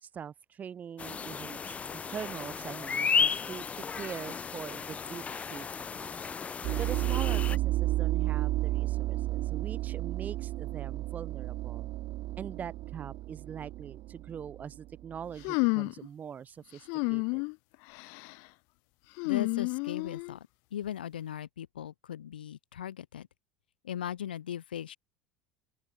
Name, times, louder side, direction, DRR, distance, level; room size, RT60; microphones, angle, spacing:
voice 1, 0.0-5.2 5.5-5.7 5.9-11.9 12.4-17.4, right 7 dB, 30° right, 4.8 m, -43 dB
sound 1, 1.0-7.6, left 6 dB, 25° left, 2.8 m, -34 dB
sound 2, 6.6-15.3, right 17 dB, 45° right, 0.5 m, -32 dB
sound 3, 15.4-16.1 16.9-17.5 17.9-18.3 19.2-20.4, left 34 dB, 55° left, 0.4 m, -30 dB
voice 2, 19.2-23.3 23.8-25.0, left 10 dB, 75° left, 4.3 m, -38 dB
open air
figure-of-eight pair, 70°, 5 cm